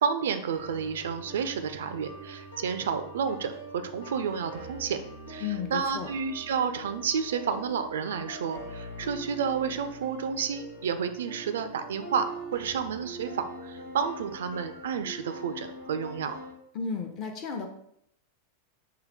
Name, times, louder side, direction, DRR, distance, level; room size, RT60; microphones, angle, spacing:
voice 1, 0.0-3.5 3.8-5.0 5.3-16.4, right 6 dB, 60° right, 9 dB, 0.3 m, -31 dB
sound 1, 0.5-16.5, right 1 dB, 75° left, 0.9 m, -43 dB
voice 2, 5.4-6.1 16.7-17.7, left 6 dB, 35° left, 5 dB, 0.7 m, -33 dB
5.6 x 2.2 x 3.4 m, 0.74 s
figure-of-eight pair, 90°, 0 cm